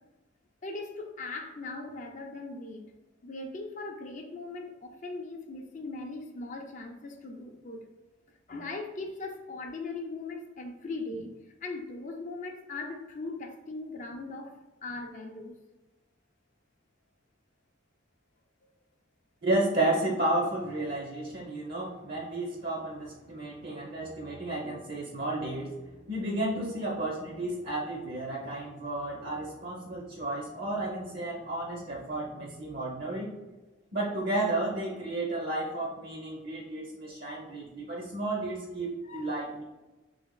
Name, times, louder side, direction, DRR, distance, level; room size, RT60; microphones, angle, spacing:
voice 1, 0.6-2.9 3.2-7.9 8.5-11.3 11.6-14.5 14.8-15.5 23.7-23.8 37.2-37.4 39.0-39.3, left 3 dB, 40° left, 3 dB, 0.5 m, -39 dB
voice 2, 19.4-33.4 33.9-39.6, right 2 dB, 50° right, -2 dB, 0.7 m, -32 dB
3.4 x 3.3 x 3.7 m, 1.1 s
head